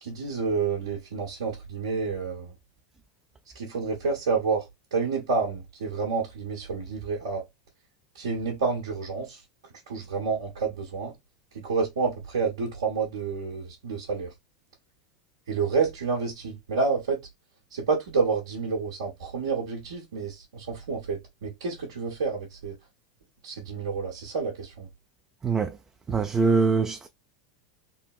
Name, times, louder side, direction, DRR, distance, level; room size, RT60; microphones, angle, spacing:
voice 1, 0.0-2.5 3.5-7.4 8.1-9.4 9.9-11.1 11.5-14.3 15.5-17.2 17.7-22.7 23.4-24.9, right 5 dB, 85° right, 1.3 m, -29 dB
voice 2, 25.4-25.8 26.1-27.1, right 4 dB, 20° right, 0.4 m, -23 dB
3.7 x 2.0 x 2.3 m
hypercardioid pair, 105°, 3 cm